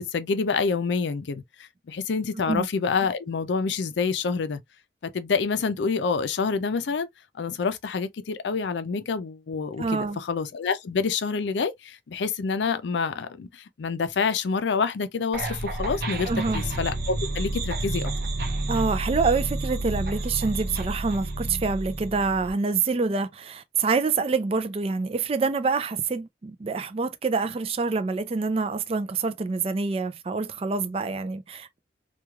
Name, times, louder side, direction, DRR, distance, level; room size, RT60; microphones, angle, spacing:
voice 1, 0.0-1.4 1.9-4.6 5.1-7.1 7.4-18.1, left 5 dB, 80° left, 0.4 m, -27 dB
voice 2, 9.8-10.2 16.3-16.6 18.7-31.8, right 4 dB, 35° right, 0.3 m, -26 dB
sound 1, 15.3-22.5, right 2 dB, 55° right, 0.7 m, -30 dB
3.1 x 2.3 x 2.2 m
head